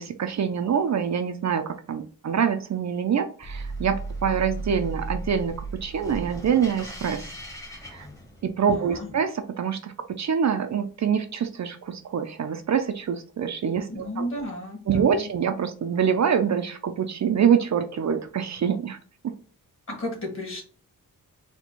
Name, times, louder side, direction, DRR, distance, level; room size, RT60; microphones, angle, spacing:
voice 1, 0.0-7.3 7.9-8.1 8.4-14.3 14.9-19.0 19.2-19.3, right 7 dB, 50° right, 8 dB, 0.5 m, -25 dB
sound 1, 3.4-8.7, right 2 dB, 10° left, 1.0 m, -35 dB
voice 2, 8.7-9.1 13.9-15.3 19.9-20.6, left 1 dB, 35° left, 0 dB, 1.7 m, -33 dB
4.1 x 2.2 x 4.4 m, 0.41 s
wide cardioid pair, 155°, 35 cm